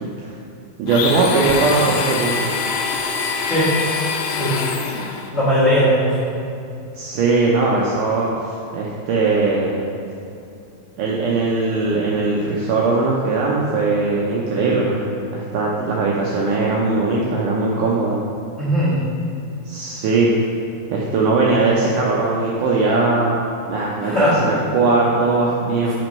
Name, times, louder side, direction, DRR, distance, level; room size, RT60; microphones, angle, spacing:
voice 1, 0.0-0.4 0.8-2.5 6.9-9.8 11.0-15.0 15.3-18.2 19.7-20.4 20.9-23.4 23.7-24.1 24.4-25.9, right 3 dB, 80° right, -4 dB, 1.8 m, -19 dB
Domestic sounds home sounds, 0.9-5.3, left 5 dB, 85° left, 2.6 m, -24 dB
voice 2, 4.2-4.6 5.3-6.1 18.6-19.0 24.0-24.3, equal, 50° left, -10 dB, 0.7 m, -18 dB
6.1 x 5.3 x 5.3 m, 2.6 s
omnidirectional pair, 4.4 m